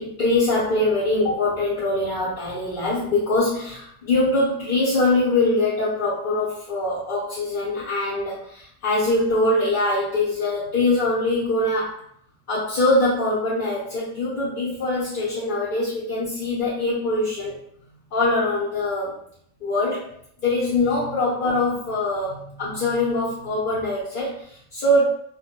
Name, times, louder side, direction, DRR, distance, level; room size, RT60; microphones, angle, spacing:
voice 1, 0.0-12.0 12.5-17.6 18.1-19.2 19.6-20.1 20.4-25.1, left 2 dB, 50° left, -9 dB, 0.7 m, -23 dB
2.2 x 2.1 x 2.8 m, 0.67 s
omnidirectional pair, 1.3 m